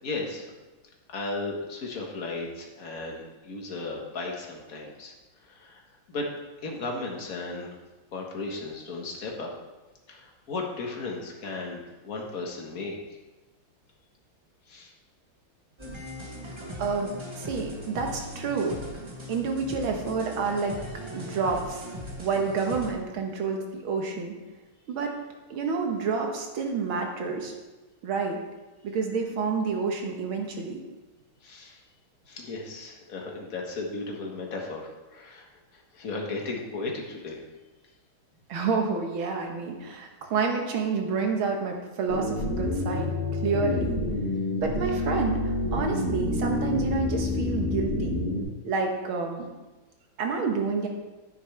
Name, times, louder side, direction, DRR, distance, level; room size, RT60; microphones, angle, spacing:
voice 1, 0.0-0.5 1.1-5.1 5.4-5.8 6.1-6.3 6.6-7.7 8.1-9.5 10.1-13.0 14.7-14.9 31.4-31.8 32.3-35.5 35.7-37.4, left 3 dB, 45° left, 0 dB, 1.7 m, -35 dB
sound 1, 15.8-22.9, left 1 dB, 20° right, 0.8 m, -39 dB
voice 2, 16.8-18.8 19.3-20.7 21.1-21.9 22.2-24.3 24.9-25.1 25.5-27.5 28.0-28.4 28.8-30.8 38.5-43.1 43.4-44.0 44.6-48.2 48.6-49.5 50.2-50.9, right 5 dB, 75° right, 2 dB, 2.0 m, -29 dB
sound 2, 42.1-48.4, left 2 dB, 85° left, 3.0 m, -28 dB
9.8 x 9.6 x 3.4 m, 1.1 s
omnidirectional pair, 2.3 m